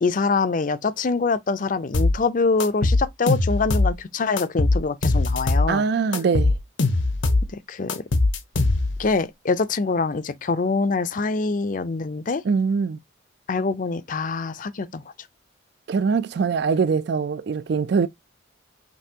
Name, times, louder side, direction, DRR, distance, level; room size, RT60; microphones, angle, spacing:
voice 1, 0.0-5.8 7.5-8.0 9.0-12.4 13.5-15.0, left 4 dB, 45° left, 0.5 m, -24 dB
sound 1, 1.9-2.2 2.6-4.0 4.4-5.7 6.1-7.5 7.9-9.1, left 2 dB, 75° left, 0.9 m, -21 dB
voice 2, 5.7-6.5 12.4-13.0 15.9-18.1, right 5 dB, 60° right, 0.4 m, -22 dB
5.3 x 3.3 x 2.7 m
head